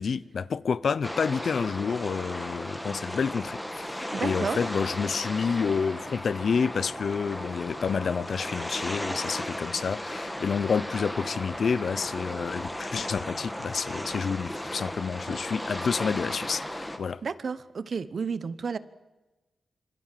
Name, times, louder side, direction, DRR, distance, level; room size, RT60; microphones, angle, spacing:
voice 1, 0.0-17.2, left 6 dB, 60° left, 0.8 m, -29 dB
sound 1, 1.0-17.0, left 1 dB, 5° left, 2.0 m, -35 dB
voice 2, 4.1-4.6 17.2-18.8, right 5 dB, 55° right, 1.0 m, -31 dB
25.5 x 25.0 x 7.6 m
wide cardioid pair, 125°, 0 cm